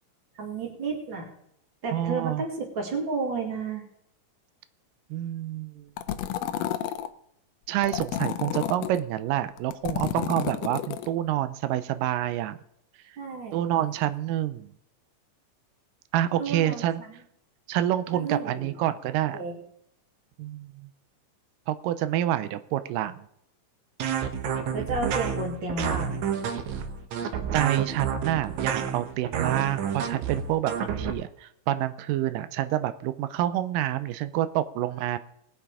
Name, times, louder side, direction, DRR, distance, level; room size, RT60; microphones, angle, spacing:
voice 1, 0.3-1.3 1.8-3.8 13.2-13.6 16.4-17.2 18.1-18.8 19.3-19.6 24.7-26.2, right 3 dB, 40° right, 1 dB, 2.9 m, -32 dB
voice 2, 1.9-2.4 5.1-5.9 7.7-12.6 13.5-14.7 16.1-17.0 17.7-19.4 20.4-20.9 21.7-23.3 27.5-35.2, right 13 dB, 90° right, 12 dB, 2.3 m, -28 dB
sound 1, 6.0-7.1 7.8-9.0 9.6-11.1, left 11 dB, 85° left, 1.5 m, -31 dB
sound 2, 24.0-31.1, right 7 dB, 65° right, 2.3 m, -29 dB
19.5 x 7.1 x 4.9 m, 0.74 s
omnidirectional pair, 3.7 m